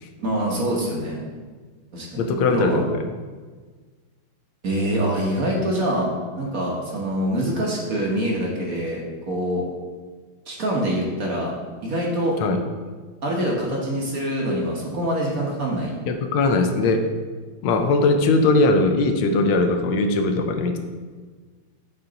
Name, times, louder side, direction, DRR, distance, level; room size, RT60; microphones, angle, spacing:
voice 1, 0.2-1.2 1.9-2.2 2.5-2.8 4.6-6.1 6.3-9.0 9.3-9.6 10.5-11.5 11.8-12.3 13.2-15.9, right 1 dB, 50° right, -2 dB, 1.2 m, -24 dB
voice 2, 2.2-3.0 12.4-12.6 16.1-17.1 17.6-20.8, left 3 dB, 80° left, 6 dB, 1.4 m, -20 dB
7.5 x 4.0 x 3.9 m, 1.4 s
omnidirectional pair, 2.2 m